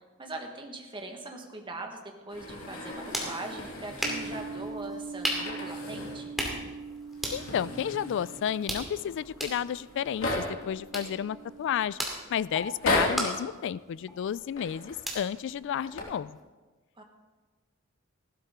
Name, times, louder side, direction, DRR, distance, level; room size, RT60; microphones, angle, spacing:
voice 1, 0.2-6.3 17.0-17.1, right 2 dB, 25° right, 2 dB, 1.5 m, -41 dB
sound 1, 2.3-4.8 5.3-6.3 6.6-6.7 7.1-8.7 9.4-9.5 9.7-10.7 11.4-11.9 12.6-13.4 14.5-15.1 15.7-16.0, left 2 dB, 80° left, 2.7 m, -35 dB
sound 2, 2.7-16.4, equal, ahead, 2.4 m, -39 dB
sound 3, 4.0-11.9, right 5 dB, 70° right, 0.4 m, -43 dB
voice 2, 7.3-12.0 12.3-16.4, left 9 dB, 60° left, 19 dB, 0.3 m, -32 dB
14.5 x 12.5 x 3.7 m, 1.3 s
head